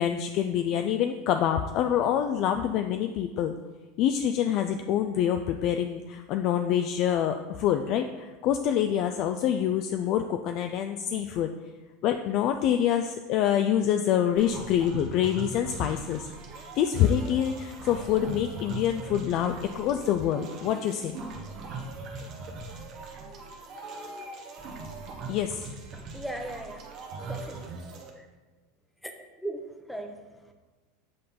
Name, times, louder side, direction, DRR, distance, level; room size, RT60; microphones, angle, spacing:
voice 1, 0.0-3.5 4.0-11.5 12.0-16.3 16.7-21.2 25.3-25.7, left 10 dB, 55° left, 6 dB, 0.3 m, -26 dB
sound 1, 14.4-28.1, right 3 dB, 45° right, 1.0 m, -40 dB
voice 2, 25.9-26.9 27.3-27.8 28.2-28.3 29.0-30.5, right 1 dB, ahead, 4 dB, 0.8 m, -39 dB
7.7 x 4.2 x 3.7 m, 1.3 s
supercardioid pair, 110°, 0 cm